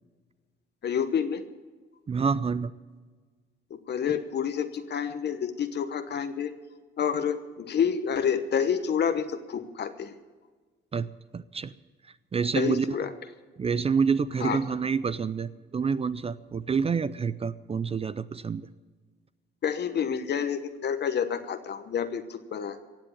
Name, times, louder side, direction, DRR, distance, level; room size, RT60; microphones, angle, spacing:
voice 1, 0.8-1.4 3.7-6.5 7.0-10.1 12.5-13.1 14.4-14.6 19.6-22.8, left 7 dB, 55° left, 9 dB, 1.1 m, -28 dB
voice 2, 2.1-2.7 10.9-11.7 12.0-13.0 13.6-18.7, right 5 dB, 30° right, 16 dB, 0.5 m, -28 dB
16.5 x 7.7 x 9.9 m, 1.4 s
cardioid pair, 90°, 20 cm